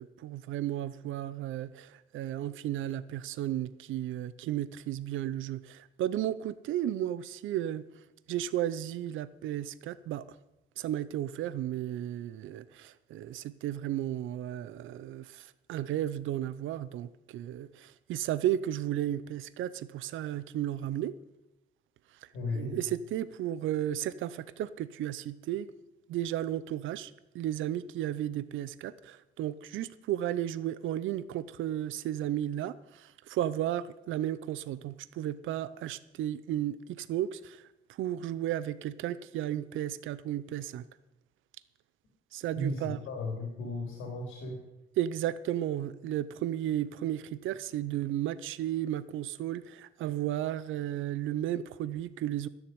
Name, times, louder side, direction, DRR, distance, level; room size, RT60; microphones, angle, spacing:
voice 1, 0.0-7.8 8.3-10.3 10.8-21.1 22.2-22.3 22.5-25.7 26.1-37.7 38.0-40.9 42.3-43.0 45.0-52.5, right 12 dB, 80° right, 16 dB, 0.6 m, -34 dB
voice 2, 22.3-22.8 42.5-44.6, left 1 dB, 85° left, 0 dB, 3.6 m, -35 dB
12.5 x 7.2 x 9.7 m, 0.95 s
cardioid pair, 90°, 20 cm